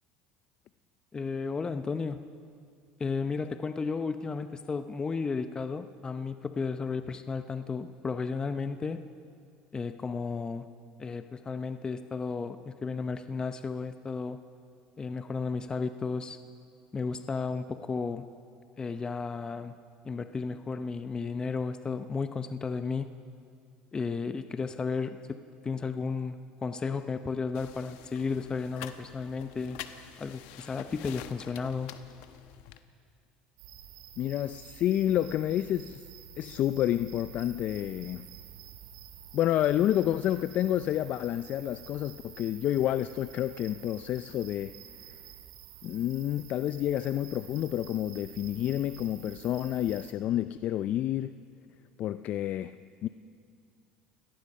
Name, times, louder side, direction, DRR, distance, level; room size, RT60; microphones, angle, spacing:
voice 1, 1.1-2.2 3.0-9.1 9.7-10.7 11.0-14.4 15.0-16.4 16.9-18.3 18.8-19.7 20.0-23.1 23.9-25.4 25.6-29.8 30.2-31.9, left 4 dB, 25° left, 10 dB, 0.8 m, -33 dB
sound 1, 27.5-32.8, left 11 dB, 75° left, 1.2 m, -47 dB
sound 2, 33.6-50.1, right 10 dB, 80° right, 2.2 m, -49 dB
voice 2, 34.2-36.1 36.4-38.3 39.3-44.7 45.1-45.2 45.8-51.3 52.0-53.1, left 12 dB, 55° left, 13 dB, 0.5 m, -29 dB
29.5 x 18.0 x 5.4 m, 2.3 s
supercardioid pair, 90°, 3 cm